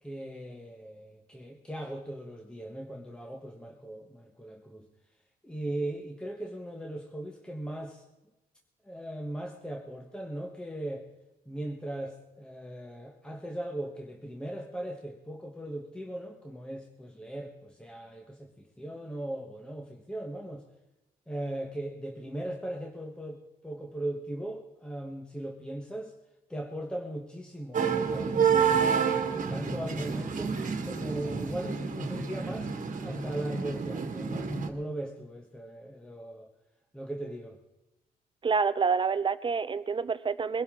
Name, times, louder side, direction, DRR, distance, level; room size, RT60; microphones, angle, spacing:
voice 1, 0.0-4.9 5.4-8.0 8.8-11.1 11.4-20.6 21.3-26.1 26.5-30.5 30.8-36.5 36.9-37.6, right 1 dB, 5° left, 2 dB, 1.2 m, -39 dB
sound 1, 27.7-34.7, right 6 dB, 50° right, 1.6 m, -29 dB
voice 2, 38.4-40.6, right 5 dB, 30° right, 13 dB, 0.6 m, -27 dB
22.0 x 12.0 x 3.7 m, 0.98 s
cardioid pair, 120°, 16 cm